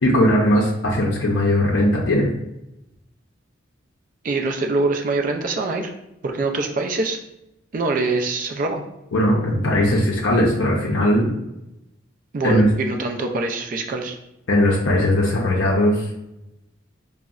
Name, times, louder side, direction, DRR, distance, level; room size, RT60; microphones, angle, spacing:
voice 1, 0.0-2.3 9.1-11.3 12.4-12.7 14.5-16.1, left 1 dB, 70° left, -3 dB, 0.5 m, -19 dB
voice 2, 4.2-5.9 6.2-7.2 7.7-8.8 12.3-14.2, right 3 dB, 40° right, 4 dB, 0.3 m, -24 dB
3.7 x 2.0 x 2.3 m, 0.87 s
head